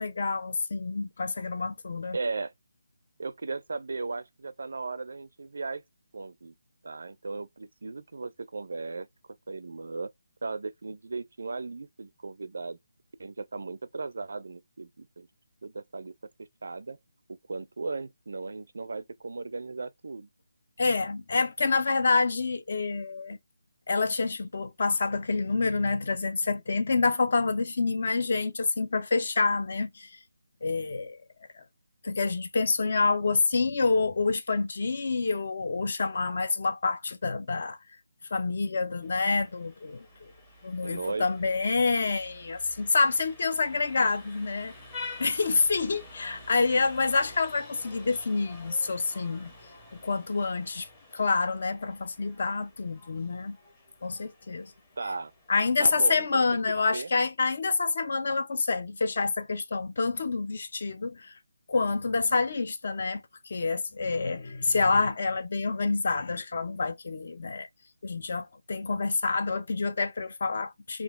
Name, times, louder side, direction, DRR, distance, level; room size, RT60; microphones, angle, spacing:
voice 1, 0.0-2.2 20.8-23.4 23.9-30.2 30.6-31.2 32.0-37.8 38.3-40.1 40.6-44.7 45.2-49.5 50.0-50.9 51.1-53.6 54.0-54.7 55.5-61.3 61.7-67.7 68.0-71.0, left 4 dB, 45° left, 0.5 m, -27 dB
voice 2, 2.1-2.5 3.2-5.8 6.1-6.5 6.8-9.1 9.5-10.1 10.4-12.8 13.2-15.3 15.6-16.1 16.6-17.0 17.5-20.3 40.8-41.3 55.0-55.3 55.8-56.6 56.9-57.1, right 3 dB, 65° right, 0.4 m, -36 dB
Vehicle horn car horn honking, 39.0-55.8, left 2 dB, 10° left, 0.7 m, -48 dB
3.7 x 2.4 x 2.4 m
hypercardioid pair, 170°, 0 cm